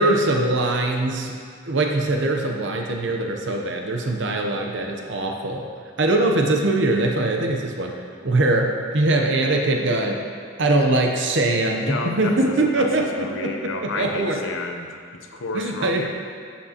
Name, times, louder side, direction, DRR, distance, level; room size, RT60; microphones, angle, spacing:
voice 1, 0.0-1.4 1.7-5.7 6.0-8.0 8.2-10.2 10.6-14.4 15.5-16.1, right 2 dB, 60° right, 2 dB, 0.7 m, -22 dB
voice 2, 11.8-16.1, left 3 dB, 80° left, 4 dB, 0.7 m, -32 dB
11.0 x 7.3 x 2.9 m, 2.1 s
head